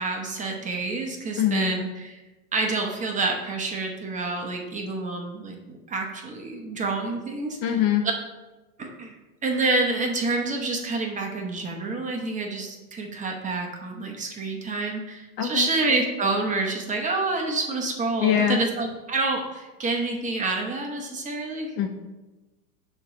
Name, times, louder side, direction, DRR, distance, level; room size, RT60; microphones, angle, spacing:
voice 1, 0.0-2.2 2.5-7.6 8.8-9.2 9.4-21.7, right 3 dB, 15° right, 1 dB, 0.8 m, -28 dB
voice 2, 1.4-1.8 7.6-8.0 15.4-15.7 18.2-18.6 21.8-21.9, left 10 dB, 35° left, 4 dB, 0.6 m, -23 dB
6.6 x 3.1 x 5.8 m, 1.1 s
hypercardioid pair, 120°, 47 cm